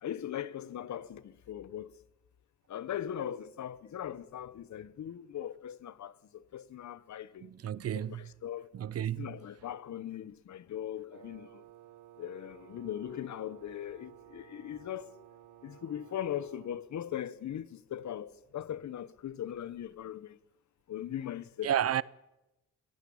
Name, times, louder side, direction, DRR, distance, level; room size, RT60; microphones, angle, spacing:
voice 1, 0.0-1.9 2.7-7.5 7.9-8.7 9.2-11.6 12.2-15.1 15.6-20.4 20.9-21.7, left 10 dB, 65° left, 1.1 m, -39 dB
voice 2, 7.4-8.3 8.7-9.3 21.6-22.0, right 10 dB, 50° right, 0.7 m, -32 dB
Wind instrument woodwind instrument, 11.1-16.9, right 12 dB, 80° right, 2.0 m, -55 dB
21.5 x 17.0 x 8.7 m
cardioid pair, 100°, 31 cm